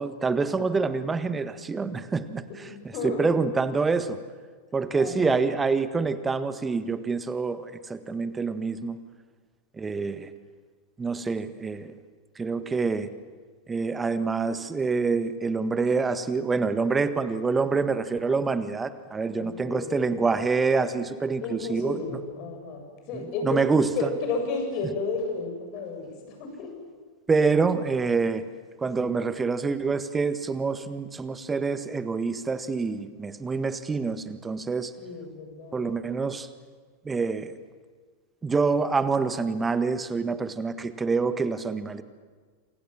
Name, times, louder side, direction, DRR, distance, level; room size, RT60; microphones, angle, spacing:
voice 1, 0.0-2.7 3.0-4.2 4.7-9.0 9.8-10.3 11.0-11.9 12.4-13.1 13.7-22.2 23.1-24.1 27.3-28.4 28.8-34.9 35.7-36.5 37.0-37.6 38.4-42.0, right 4 dB, 15° right, 12 dB, 1.6 m, -26 dB
voice 2, 2.7-3.3 5.0-5.4 19.4-20.2 21.4-26.7 35.0-36.0, left 3 dB, 40° left, 3 dB, 8.0 m, -33 dB
28.0 x 27.5 x 7.7 m, 1.5 s
figure-of-eight pair, 90°, 0 cm